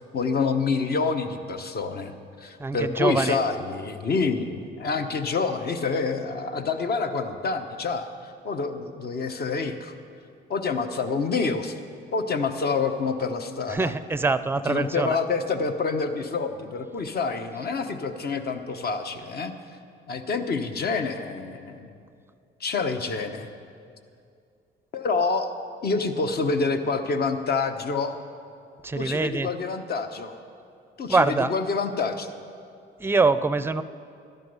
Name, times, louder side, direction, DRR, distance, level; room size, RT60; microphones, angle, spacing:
voice 1, 0.1-8.1 8.4-9.9 10.5-11.8 12.1-13.9 14.7-19.5 20.1-21.9 22.6-23.5 24.9-25.5 25.8-28.2 29.0-30.4 31.0-32.3, left 4 dB, 50° left, 7 dB, 1.0 m, -27 dB
voice 2, 2.6-3.4 13.7-15.2 28.8-29.5 31.1-31.5 33.0-33.8, right 3 dB, 10° right, 13 dB, 0.5 m, -24 dB
14.0 x 11.0 x 5.5 m, 2.4 s
cardioid pair, 90°, 20 cm